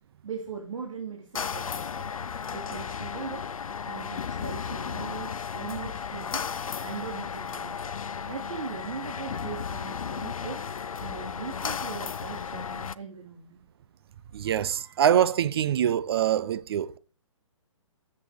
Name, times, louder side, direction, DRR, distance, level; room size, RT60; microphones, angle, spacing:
voice 1, 0.2-2.0 2.5-3.5 3.8-6.5 6.8-7.7 8.3-10.6 11.0-13.6, right 6 dB, 70° right, 2.7 m, -39 dB
sound 1, 1.3-12.9, left 6 dB, 90° left, 0.5 m, -34 dB
voice 2, 14.3-17.0, right 10 dB, 45° right, 0.6 m, -24 dB
9.3 x 7.5 x 4.8 m
hypercardioid pair, 145°, 17 cm